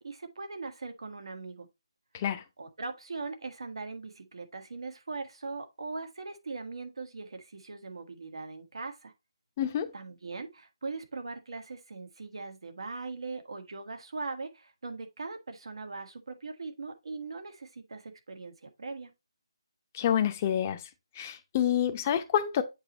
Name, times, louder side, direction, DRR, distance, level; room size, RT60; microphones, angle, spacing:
voice 1, 0.0-1.7 2.6-9.1 9.9-19.1, right 3 dB, 70° right, 1.6 m, -40 dB
voice 2, 9.6-9.9 19.9-20.8 21.2-22.6, left 10 dB, 25° left, 0.7 m, -28 dB
7.9 x 3.1 x 4.1 m
hypercardioid pair, 165°, 3 cm